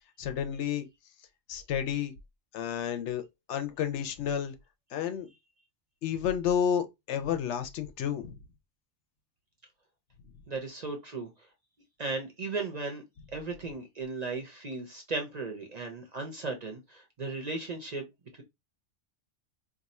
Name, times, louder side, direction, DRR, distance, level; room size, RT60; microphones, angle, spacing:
voice 1, 0.2-0.9 1.5-2.1 2.5-3.2 3.5-4.6 4.9-5.3 6.0-8.4, left 8 dB, 75° left, 0.9 m, -31 dB
voice 2, 10.5-11.3 12.0-13.0 13.3-18.1, right 3 dB, 45° right, 0.6 m, -36 dB
2.6 x 2.3 x 4.1 m
omnidirectional pair, 1.2 m